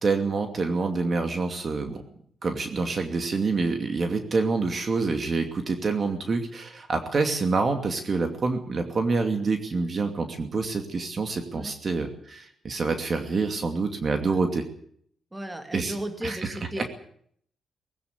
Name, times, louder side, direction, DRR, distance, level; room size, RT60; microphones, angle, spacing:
voice 1, 0.0-2.0 2.4-14.7 15.7-15.9 16.2-16.8, right 4 dB, 40° right, 5 dB, 2.6 m, -27 dB
voice 2, 15.3-16.9, right 1 dB, 10° right, 5 dB, 3.0 m, -35 dB
20.0 x 17.5 x 8.3 m, 0.64 s
cardioid pair, 125°, 0 cm